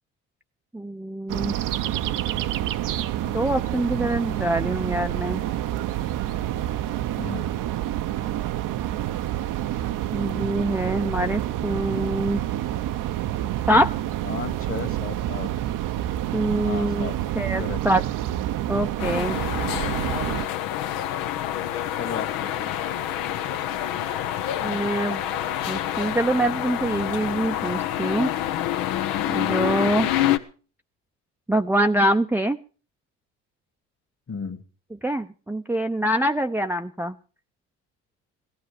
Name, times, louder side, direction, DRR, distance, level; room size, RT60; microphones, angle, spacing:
voice 1, 0.7-1.5 3.3-5.4 10.1-12.4 13.7-13.9 16.3-17.1 17.3-18.0 18.7-19.4 24.6-25.2 25.7-28.3 29.3-30.1 31.5-32.6 35.0-37.2, right 1 dB, 5° right, 5 dB, 0.6 m, -24 dB
sound 1, 1.3-20.5, right 13 dB, 60° right, 0.8 m, -28 dB
voice 2, 7.2-7.5 14.3-15.5 16.6-17.2 17.6-17.8 21.9-22.7 34.3-34.6, left 6 dB, 40° left, 11 dB, 1.9 m, -34 dB
sound 2, 19.0-30.4, left 11 dB, 75° left, 1.1 m, -27 dB
17.0 x 12.5 x 5.0 m, 0.38 s
supercardioid pair, 65°, 35 cm